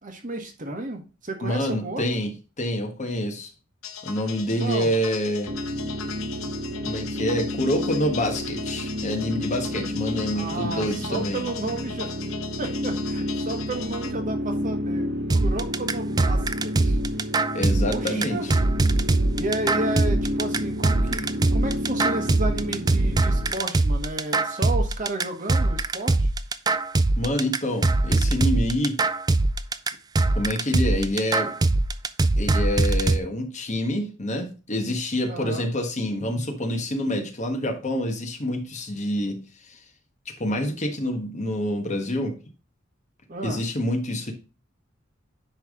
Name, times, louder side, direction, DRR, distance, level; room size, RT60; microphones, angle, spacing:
voice 1, 0.0-2.0 4.6-4.9 10.3-12.1 12.6-17.0 17.8-18.5 19.3-26.3 35.3-35.7 43.3-43.6, right 2 dB, 40° right, 4 dB, 1.4 m, -32 dB
voice 2, 1.4-3.5 4.0-5.5 6.8-11.5 17.5-18.6 27.2-29.0 30.3-31.5 32.4-39.8 40.3-42.4 43.4-44.3, equal, 35° left, 4 dB, 1.3 m, -27 dB
sound 1, 3.8-14.1, left 8 dB, 85° left, 0.8 m, -39 dB
sound 2, 5.5-23.5, equal, 55° right, 0.9 m, -30 dB
sound 3, 15.3-33.2, right 2 dB, 20° right, 0.3 m, -22 dB
10.0 x 3.4 x 3.6 m, 0.32 s
head